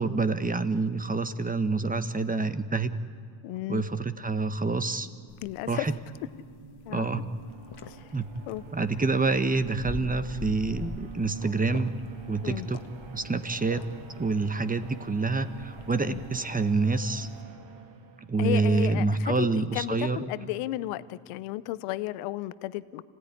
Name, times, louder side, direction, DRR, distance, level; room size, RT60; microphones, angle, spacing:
voice 1, 0.0-2.9 3.7-5.1 5.7-5.9 6.9-7.2 8.1-8.3 8.7-11.9 12.3-12.8 13.1-13.8 14.2-17.3 18.3-20.3, right 3 dB, 15° right, 11 dB, 1.4 m, -27 dB
voice 2, 3.4-3.8 5.4-5.9 6.9-7.1 7.9-8.1 8.5-8.6 12.4-12.7 16.0-16.2 18.4-23.0, left 16 dB, 85° left, 16 dB, 0.9 m, -33 dB
sound 1, 5.3-17.4, left 6 dB, 50° left, 1.6 m, -45 dB
sound 2, 5.9-18.7, right 5 dB, 65° right, 2.8 m, -48 dB
26.5 x 17.0 x 10.0 m, 2.1 s
supercardioid pair, 80°, 50 cm